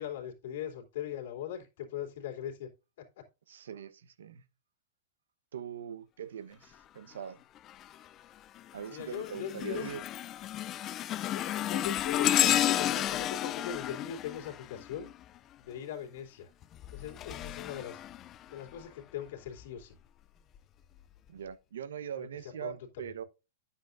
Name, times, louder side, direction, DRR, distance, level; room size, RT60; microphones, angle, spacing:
voice 1, 0.0-2.7 3.0-3.2 8.9-9.9 11.2-15.1 15.6-16.5 16.9-18.0 18.5-19.9 22.2-22.3 22.6-23.1, left 9 dB, 65° left, 3.0 m, -40 dB
voice 2, 3.5-4.4 5.5-7.4 8.7-10.0 21.3-23.2, right 8 dB, 90° right, 1.0 m, -42 dB
sound 1, 7.7-8.1 8.6-15.4 16.6-18.8 19.5-19.6 20.5-20.6, left 12 dB, 25° left, 0.4 m, -32 dB
10.0 x 8.3 x 2.6 m
supercardioid pair, 155°, 0 cm